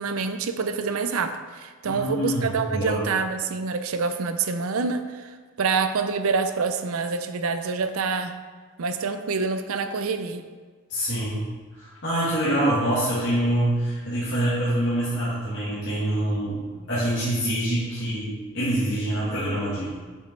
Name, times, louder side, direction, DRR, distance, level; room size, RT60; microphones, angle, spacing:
voice 1, 0.0-5.3 5.6-8.3 8.8-10.4, right 4 dB, 80° right, 9 dB, 0.5 m, -26 dB
voice 2, 1.9-3.0 10.9-11.4 11.7-19.9, right 1 dB, 55° left, -10 dB, 2.2 m, -25 dB
7.2 x 5.1 x 4.6 m, 1.5 s
head